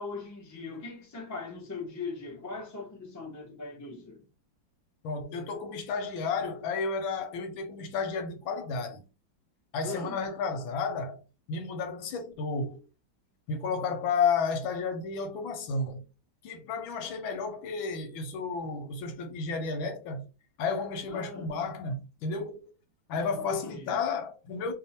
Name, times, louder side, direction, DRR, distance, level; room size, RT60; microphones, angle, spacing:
voice 1, 0.0-4.2 9.8-10.2 21.1-21.5 23.5-24.0, left 4 dB, 25° left, 0.3 m, -39 dB
voice 2, 5.0-9.0 9.7-11.2 11.5-12.8 13.5-16.0 16.4-20.2 20.6-22.6 23.1-24.7, left 4 dB, 90° left, 1.6 m, -32 dB
3.5 x 2.1 x 4.1 m
omnidirectional pair, 2.1 m